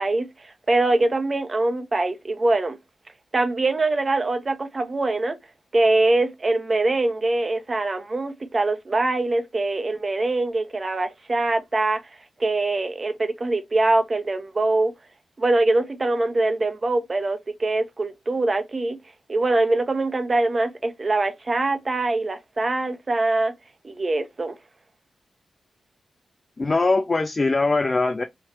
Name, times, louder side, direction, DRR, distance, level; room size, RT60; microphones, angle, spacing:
voice 1, 0.0-2.8 3.3-5.4 5.7-12.0 12.4-14.9 15.4-19.0 19.3-23.5 23.8-24.6, right 2 dB, 35° right, 0.8 m, -23 dB
voice 2, 26.6-28.2, left 3 dB, 30° left, 0.4 m, -21 dB
3.1 x 3.1 x 4.4 m
wide cardioid pair, 105°, 0 cm